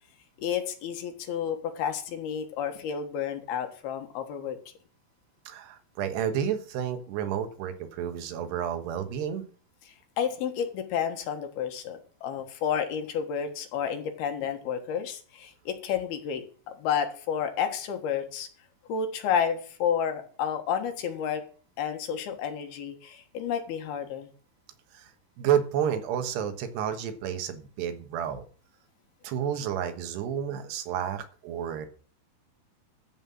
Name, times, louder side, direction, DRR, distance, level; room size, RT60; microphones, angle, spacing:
voice 1, 0.4-4.6 10.2-18.5 18.9-21.4 21.8-24.3, left 8 dB, 75° left, 6 dB, 3.2 m, -31 dB
voice 2, 5.5-9.5 24.9-25.1 25.4-28.4 29.2-31.9, right 9 dB, 80° right, 8 dB, 3.4 m, -30 dB
14.0 x 5.6 x 7.5 m, 0.42 s
omnidirectional pair, 4.8 m